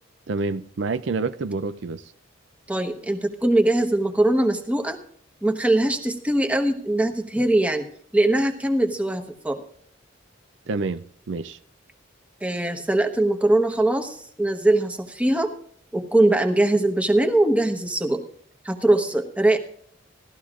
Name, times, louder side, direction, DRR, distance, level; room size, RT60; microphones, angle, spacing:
voice 1, 0.3-2.1 10.7-11.6, right 3 dB, 65° right, 0.5 m, -28 dB
voice 2, 2.7-5.0 5.4-7.9 8.1-9.6 12.4-15.5 15.9-18.2 18.6-19.6, right 1 dB, 5° right, 1.1 m, -21 dB
17.5 x 13.0 x 2.5 m
head